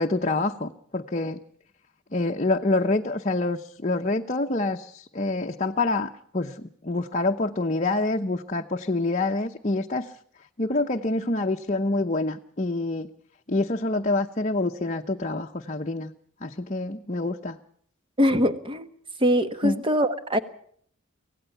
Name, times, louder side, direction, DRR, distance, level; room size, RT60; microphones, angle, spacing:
voice 1, 0.0-1.4 2.1-10.1 10.6-13.1 13.5-16.1 16.4-17.6 19.6-19.8, left 2 dB, 35° left, 3 dB, 0.8 m, -26 dB
voice 2, 18.2-18.9 19.2-20.4, equal, 25° right, 9 dB, 1.3 m, -22 dB
25.0 x 17.0 x 6.8 m, 0.63 s
head